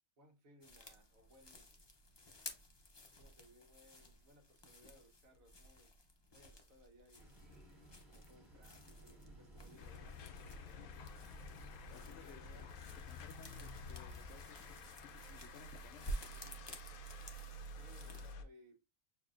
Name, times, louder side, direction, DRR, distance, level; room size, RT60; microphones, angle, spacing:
voice 1, 0.2-1.7 3.2-5.9 6.3-7.3 7.9-10.9 11.9-12.7 17.7-19.0, equal, 75° right, 1.5 m, -65 dB
sound 1, 0.6-18.3, equal, 35° left, 0.4 m, -53 dB
sound 2, 7.1-15.4, right 1 dB, 20° right, 1.5 m, -60 dB
sound 3, 9.8-18.4, left 2 dB, 90° left, 1.1 m, -51 dB
voice 2, 11.9-12.7 13.1-16.6, left 8 dB, 65° left, 0.7 m, -59 dB
6.5 x 2.7 x 2.5 m
omnidirectional pair, 1.5 m